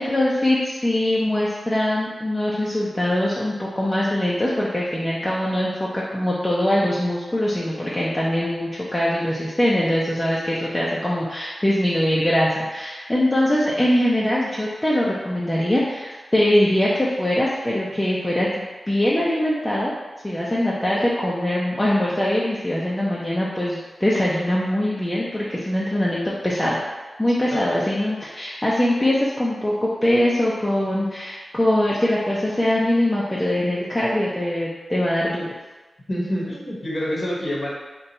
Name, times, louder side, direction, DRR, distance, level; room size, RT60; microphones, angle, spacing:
voice 1, 0.0-19.9 20.2-26.8 27.2-35.5, left 1 dB, 15° left, -6 dB, 0.5 m, -22 dB
voice 2, 36.1-37.7, equal, 45° left, -4 dB, 0.8 m, -27 dB
2.7 x 2.2 x 4.1 m, 1.2 s
cardioid pair, 60°, 0 cm